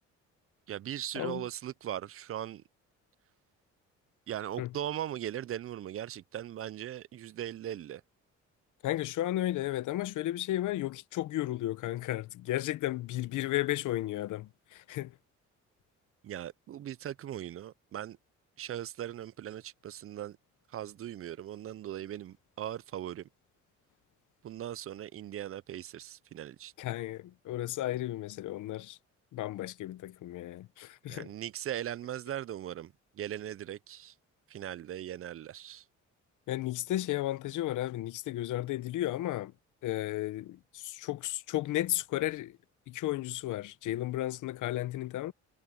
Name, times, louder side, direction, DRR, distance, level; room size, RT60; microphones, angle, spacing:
voice 1, 0.7-2.6 4.3-8.0 16.2-18.2 18.6-20.4 20.7-23.3 24.4-26.7 31.1-34.1 34.5-35.8, right 11 dB, 50° right, 0.5 m, -39 dB
voice 2, 8.8-15.1 26.8-29.0 29.3-31.3 36.5-39.5 39.8-42.6 42.9-45.3, left 15 dB, 80° left, 0.9 m, -34 dB
cardioid pair, 90°, 30 cm